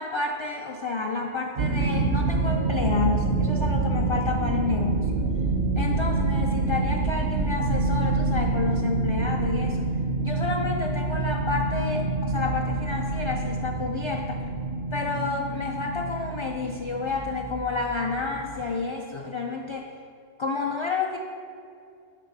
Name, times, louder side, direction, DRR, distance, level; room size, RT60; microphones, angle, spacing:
voice 1, 0.0-5.3 5.8-9.9 10.2-14.5 14.9-19.9 20.4-21.2, left 4 dB, 45° left, 1 dB, 0.4 m, -30 dB
sound 1, 1.6-18.6, right 3 dB, 85° right, 1.0 m, -27 dB
9.2 x 3.3 x 6.0 m, 2.4 s
omnidirectional pair, 1.1 m